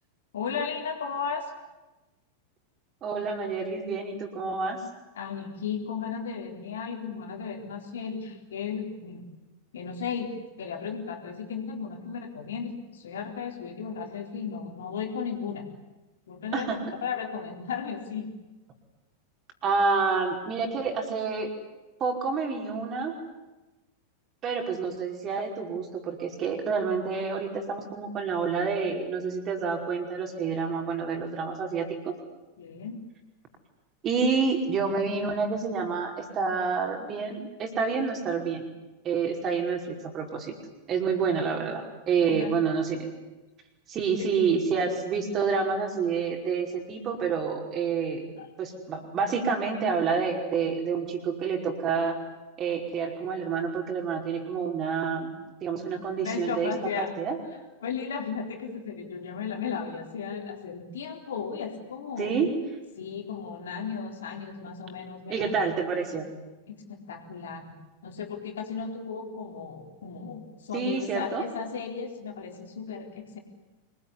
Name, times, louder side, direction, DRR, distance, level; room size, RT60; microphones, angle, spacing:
voice 1, 0.3-1.5 5.1-9.2 9.7-15.7 16.3-16.8 17.0-18.3 32.6-33.0 42.3-42.5 48.4-48.5 56.2-57.1 57.8-62.4 63.0-65.8 66.7-67.7 68.0-73.4, left 6 dB, 65° left, 3 dB, 4.0 m, -35 dB
voice 2, 3.0-4.8 16.5-16.8 19.6-21.5 22.0-23.1 24.4-32.1 34.0-38.6 39.0-40.5 40.9-43.1 43.9-48.3 48.6-52.2 52.6-55.3 55.6-57.4 62.2-62.5 65.3-66.3 70.7-71.4, right 5 dB, 30° right, 4 dB, 5.1 m, -28 dB
26.0 x 21.0 x 10.0 m, 1.1 s
figure-of-eight pair, 90°, 0 cm